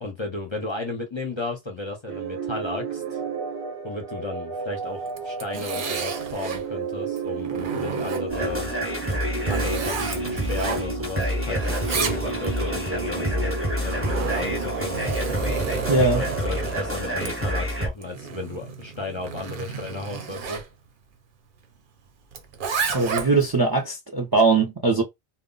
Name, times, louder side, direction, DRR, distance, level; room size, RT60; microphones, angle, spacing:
voice 1, 0.0-3.2 3.8-8.7 9.5-15.0 15.9-20.6, left 3 dB, 35° left, 0.5 m, -34 dB
sound 1, 2.1-15.8, right 4 dB, 90° right, 1.0 m, -33 dB
Zipper (clothing), 5.1-6.7 7.2-8.5 9.0-11.2 11.5-12.6 13.5-20.7 22.3-23.5, right 5 dB, 60° right, 0.7 m, -32 dB
sound 2, 8.3-17.9, equal, 15° right, 0.8 m, -28 dB
voice 2, 15.9-16.2 22.9-25.0, right 3 dB, 40° right, 0.3 m, -20 dB
2.1 x 2.0 x 3.7 m
omnidirectional pair, 1.1 m